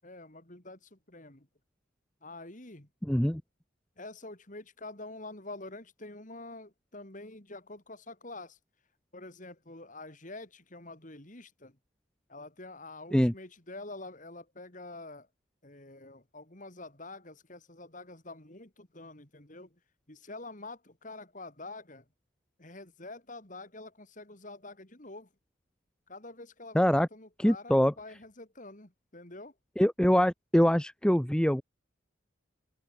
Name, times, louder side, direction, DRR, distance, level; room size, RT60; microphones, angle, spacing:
voice 1, 0.0-1.5 2.2-2.9 4.0-8.6 9.1-11.7 12.3-15.3 15.6-19.7 20.1-22.0 22.6-25.3 26.1-29.5, left 2 dB, 40° left, 2.8 m, -46 dB
voice 2, 3.0-3.4 13.1-13.3 26.7-27.1 27.4-27.9 29.8-31.6, equal, 5° left, 0.6 m, -24 dB
head